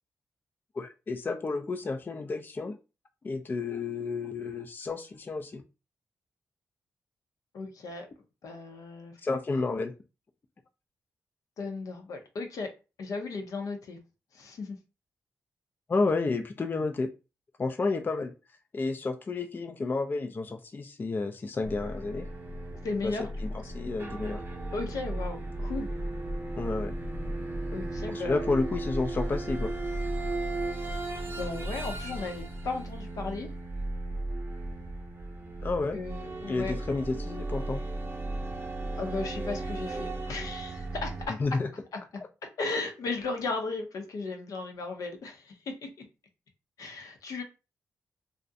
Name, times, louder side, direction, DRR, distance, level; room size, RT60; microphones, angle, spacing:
voice 1, 0.7-2.8 3.2-5.6 9.2-9.9 15.9-17.1 17.6-18.3 18.7-22.3 23.0-23.1 23.4-24.4 26.6-26.9 28.1-29.7 35.6-36.0 36.5-37.8 41.3-41.7, left 3 dB, 35° left, 0.3 m, -31 dB
voice 2, 7.5-8.1 8.4-9.1 9.7-9.8 11.6-12.7 13.0-14.0 14.3-14.8 22.8-23.3 24.7-25.9 27.7-28.5 31.2-33.5 35.9-36.8 38.9-41.4 42.1-42.2 42.6-46.1 46.8-47.4, left 3 dB, 80° left, 0.6 m, -36 dB
sound 1, 21.6-41.3, right 2 dB, 40° right, 0.5 m, -35 dB
2.4 x 2.0 x 2.6 m
cardioid pair, 75°, 6 cm